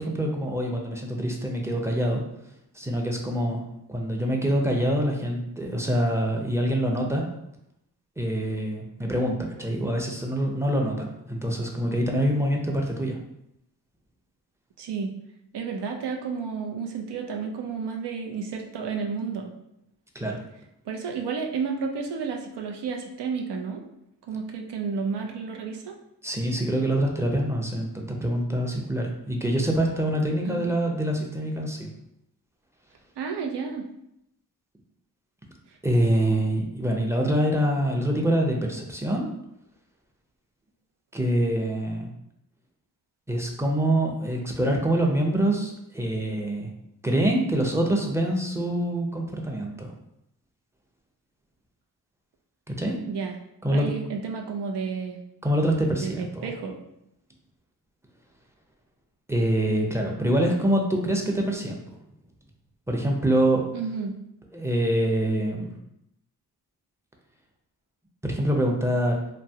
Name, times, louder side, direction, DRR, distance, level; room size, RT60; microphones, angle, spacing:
voice 1, 0.0-2.2 2.7-3.6 3.9-7.2 8.2-13.2 20.1-20.4 26.2-31.9 35.8-39.3 41.1-42.1 43.3-46.7 47.0-49.9 52.7-53.0 53.6-53.9 55.4-56.5 59.3-61.8 62.9-63.6 64.5-65.7 68.2-69.2, right 1 dB, 5° right, 0 dB, 0.6 m, -25 dB
voice 2, 14.8-15.1 15.5-19.5 20.9-23.8 24.3-25.9 30.4-30.8 33.2-33.9 53.1-53.4 53.7-55.2 55.9-56.8 63.7-64.2, right 5 dB, 75° right, 3 dB, 0.6 m, -31 dB
2.9 x 2.2 x 2.7 m, 0.81 s
cardioid pair, 50°, 42 cm